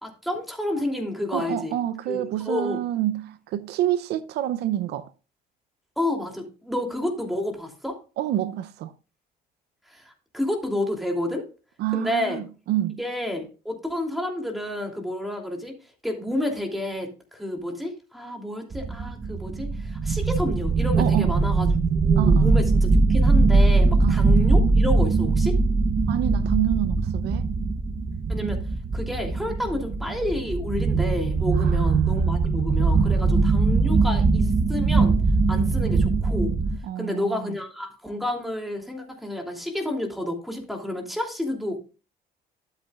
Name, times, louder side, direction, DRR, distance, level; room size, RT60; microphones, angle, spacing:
voice 1, 0.0-1.8 2.1-2.8 6.0-8.0 9.9-11.4 11.9-12.4 13.0-15.7 16.0-25.5 28.3-28.6 28.9-35.2 35.5-36.5 37.0-41.8, left 1 dB, ahead, 2.9 m, -30 dB
voice 2, 1.3-5.1 8.2-8.9 11.8-13.0 21.0-21.3 22.2-22.5 24.0-24.3 26.1-27.5 31.5-32.4 32.8-33.8 36.8-37.6, right 13 dB, 80° right, 0.6 m, -28 dB
sound 1, 18.7-36.8, right 3 dB, 30° right, 1.0 m, -21 dB
12.5 x 7.9 x 2.4 m
cardioid pair, 110°, 17 cm